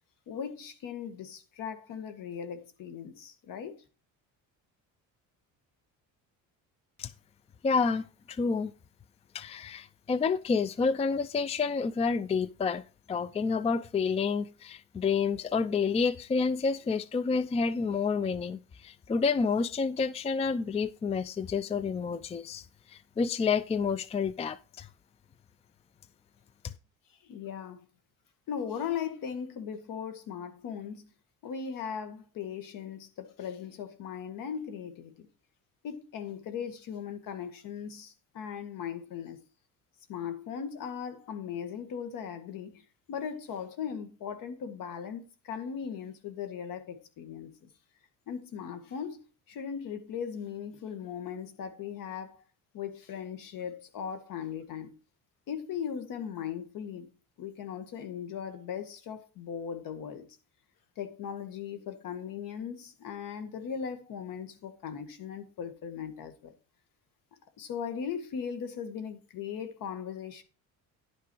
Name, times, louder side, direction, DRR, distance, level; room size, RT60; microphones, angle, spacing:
voice 1, 0.3-3.8 27.2-27.8 28.5-31.1 31.4-35.3 35.8-39.4 40.1-42.8 43.1-47.7 48.3-49.2 49.5-52.4 52.7-54.9 55.5-57.1 57.4-60.3 61.0-66.5 67.6-70.4, left 7 dB, 65° left, 1.9 m, -38 dB
voice 2, 7.6-8.7 9.3-12.8 13.1-24.9, left 5 dB, 20° left, 0.4 m, -29 dB
11.0 x 5.9 x 4.6 m
cardioid pair, 120°, 35 cm